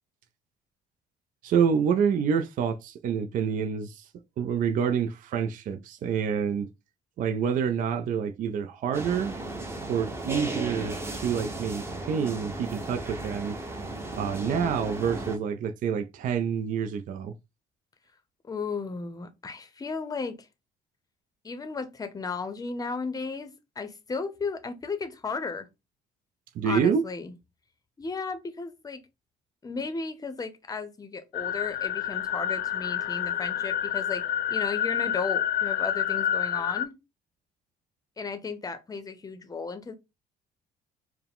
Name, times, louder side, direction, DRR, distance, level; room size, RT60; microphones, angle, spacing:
voice 1, 1.4-4.1 4.4-6.7 7.2-9.3 9.9-13.6 14.1-17.3 26.5-27.0, right 7 dB, 50° right, 0.4 m, -27 dB
sound 1, 8.9-15.4, right 2 dB, 15° right, 0.8 m, -35 dB
voice 2, 18.4-20.5 21.4-25.7 26.6-27.3 28.0-29.1 29.6-36.9 38.2-39.9, left 4 dB, 20° left, 0.7 m, -35 dB
sound 2, 31.3-36.9, left 10 dB, 75° left, 0.5 m, -28 dB
4.6 x 2.1 x 3.5 m
cardioid pair, 110°, 17 cm